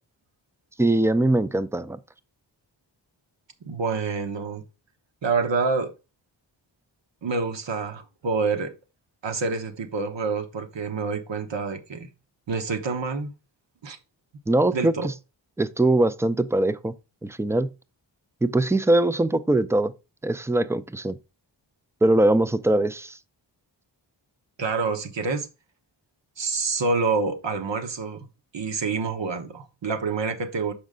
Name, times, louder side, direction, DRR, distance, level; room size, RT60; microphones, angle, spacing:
voice 1, 0.8-2.0 14.5-14.9 15.6-16.9 17.2-17.7 18.4-19.9 20.2-21.1 22.0-23.2, right 2 dB, 5° right, 0.4 m, -21 dB
voice 2, 3.6-4.6 5.2-5.9 7.2-8.7 9.2-12.1 12.5-13.3 13.8-14.0 14.7-15.1 24.6-25.5 26.4-28.3 28.5-30.7, right 4 dB, 75° right, 1.2 m, -27 dB
6.4 x 5.0 x 3.7 m
wide cardioid pair, 85°, 44 cm